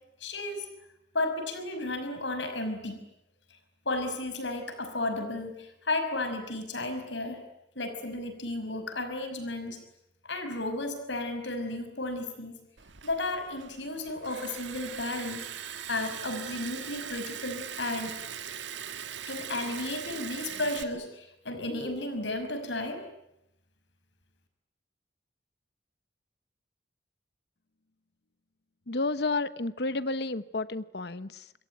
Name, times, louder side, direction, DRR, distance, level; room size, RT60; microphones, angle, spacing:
voice 1, 0.2-0.7 1.1-3.0 3.9-7.4 7.8-9.8 10.2-12.6 13.0-18.2 19.3-23.0, left 2 dB, 80° left, 8 dB, 5.6 m, -33 dB
Liquid, 12.8-20.8, right 9 dB, 80° right, 1.6 m, -40 dB
voice 2, 28.9-31.5, left 3 dB, 60° left, 15 dB, 1.0 m, -31 dB
27.0 x 22.5 x 9.3 m, 0.85 s
head